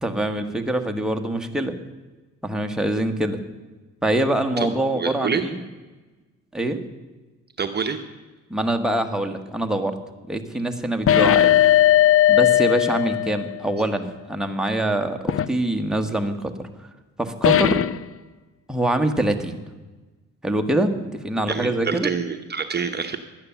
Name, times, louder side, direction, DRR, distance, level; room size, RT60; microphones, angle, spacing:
voice 1, 0.0-1.8 2.4-3.4 4.0-5.6 6.5-6.8 8.5-10.0 10.3-11.5 12.3-16.7 17.2-17.8 18.7-19.6 20.4-22.1, right 1 dB, ahead, 4 dB, 1.3 m, -24 dB
voice 2, 4.9-5.4 7.6-8.0 21.5-23.2, right 6 dB, 35° right, 6 dB, 0.9 m, -26 dB
sound 1, 11.1-13.6 15.3-15.5 17.4-18.0, left 12 dB, 45° left, 0.5 m, -17 dB
12.0 x 9.6 x 6.9 m, 1.2 s
cardioid pair, 90°, 30 cm